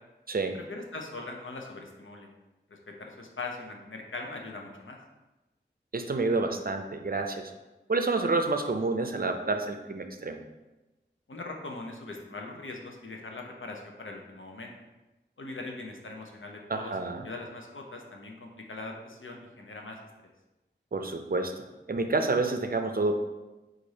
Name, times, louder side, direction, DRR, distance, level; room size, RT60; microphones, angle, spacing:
voice 1, 0.5-2.3 2.7-5.0 11.3-14.7 15.4-17.0 17.2-20.0, left 3 dB, 85° left, 1 dB, 0.7 m, -41 dB
voice 2, 5.9-7.5 7.9-10.4 16.7-17.3 20.9-23.2, right 3 dB, 50° right, 6 dB, 0.5 m, -29 dB
4.7 x 2.6 x 4.0 m, 1.1 s
wide cardioid pair, 45°, 20 cm